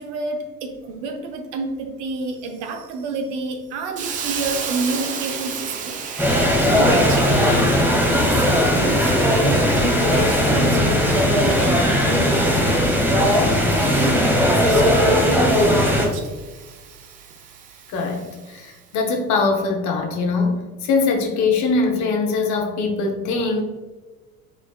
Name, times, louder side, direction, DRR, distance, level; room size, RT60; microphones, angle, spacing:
voice 1, 0.0-12.6 13.1-17.0, right 3 dB, 55° right, 4 dB, 0.8 m, -29 dB
Hiss, 4.0-18.7, right 6 dB, 20° right, 0.3 m, -35 dB
sound 1, 6.2-16.1, equal, 5° right, 1.1 m, -18 dB
voice 2, 17.9-23.6, left 4 dB, 40° left, 3 dB, 0.8 m, -22 dB
4.8 x 4.2 x 2.3 m, 1.3 s
figure-of-eight pair, 65°, 45 cm